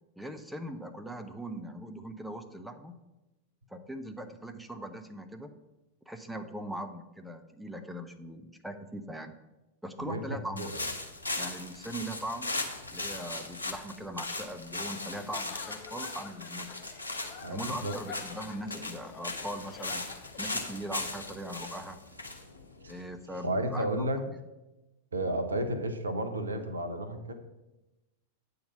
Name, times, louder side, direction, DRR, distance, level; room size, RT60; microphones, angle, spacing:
voice 1, 0.2-2.9 3.7-5.5 6.1-9.3 9.8-10.7 11.4-12.6 12.9-16.8 17.5-20.1 20.4-22.0 22.9-24.1, right 1 dB, 5° right, 7 dB, 0.6 m, -40 dB
sound 1, 10.6-23.3, left 2 dB, 80° left, 1.0 m, -38 dB
Giggle / Chuckle chortle, 15.0-20.5, left 9 dB, 45° left, 0.5 m, -48 dB
voice 2, 17.4-17.9 22.8-22.9 23.4-24.2 25.1-27.3, right 1 dB, 75° right, 7 dB, 0.8 m, -32 dB
8.5 x 3.9 x 6.9 m, 1.0 s
figure-of-eight pair, 90°, 0 cm